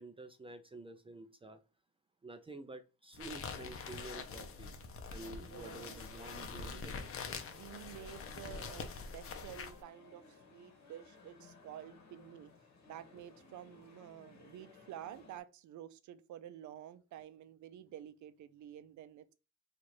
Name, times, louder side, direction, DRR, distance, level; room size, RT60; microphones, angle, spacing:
voice 1, 0.0-1.6 2.2-4.7 5.1-7.1, right 3 dB, 20° right, 0.4 m, -50 dB
sound 1, 3.1-9.8, left 5 dB, 45° left, 0.7 m, -45 dB
voice 2, 5.2-6.0 6.7-7.0 7.5-12.5 12.9-19.3, right 11 dB, 70° right, 0.5 m, -51 dB
sound 2, 6.0-15.4, left 4 dB, 65° left, 1.1 m, -60 dB
3.0 x 2.5 x 4.2 m
cardioid pair, 90°, 30 cm